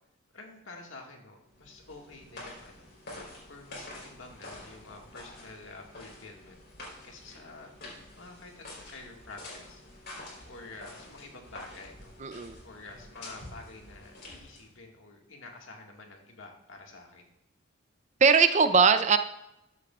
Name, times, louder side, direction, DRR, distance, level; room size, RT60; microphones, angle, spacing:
voice 1, 0.3-2.9 3.5-6.6 7.0-7.7 8.2-9.8 10.4-12.1 12.6-17.3, left 3 dB, 85° left, 1 dB, 1.8 m, -48 dB
sound 1, 1.5-14.8, left 1 dB, 55° left, 3.8 m, -48 dB
voice 2, 12.2-12.6 18.2-19.2, right 5 dB, 35° right, 10 dB, 0.5 m, -20 dB
13.0 x 8.3 x 2.4 m, 0.89 s
head